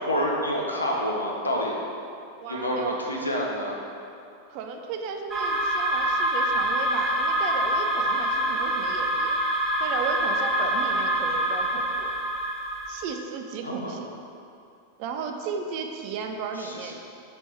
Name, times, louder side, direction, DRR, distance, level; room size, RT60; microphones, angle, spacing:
voice 1, 0.0-1.8 2.5-3.8 13.6-14.0 16.6-16.9, equal, 80° left, -1 dB, 0.6 m, -28 dB
voice 2, 2.4-3.0 4.5-9.4 9.8-12.2 12.9-14.1 15.0-16.9, right 5 dB, 45° right, 4 dB, 0.3 m, -34 dB
sound 1, 5.3-13.0, right 1 dB, 15° right, 0.7 m, -25 dB
5.2 x 2.9 x 3.3 m, 2.6 s
figure-of-eight pair, 90°, 0 cm